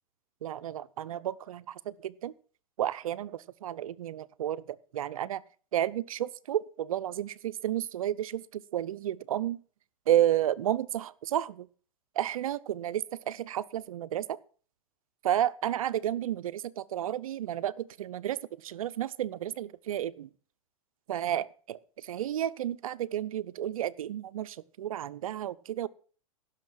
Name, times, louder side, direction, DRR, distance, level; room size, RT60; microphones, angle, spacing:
voice 1, 0.4-2.3 2.8-5.4 5.7-9.6 10.1-11.7 12.2-14.4 15.2-20.3 21.1-25.9, right 11 dB, 75° right, 16 dB, 0.7 m, -32 dB
16.5 x 6.6 x 6.4 m, 0.42 s
hypercardioid pair, 110°, 18 cm